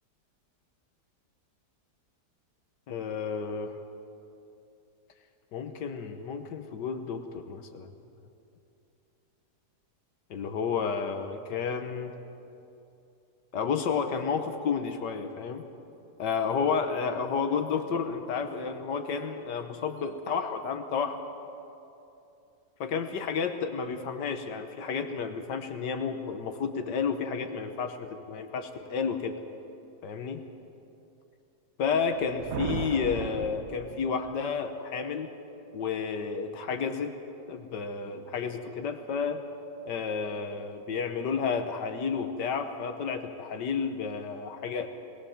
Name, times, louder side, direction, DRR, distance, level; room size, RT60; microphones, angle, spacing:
voice 1, 2.9-3.8 5.5-7.9 10.3-12.1 13.5-15.6 16.2-21.2 22.8-29.4 30.0-30.4 31.8-35.3 35.7-37.2 37.5-39.4 39.9-44.9, left 6 dB, 80° left, 7 dB, 1.7 m, -31 dB
sound 1, 32.1-34.6, right 9 dB, 80° right, 0.6 m, -37 dB
20.5 x 19.5 x 7.2 m, 2.8 s
omnidirectional pair, 1.8 m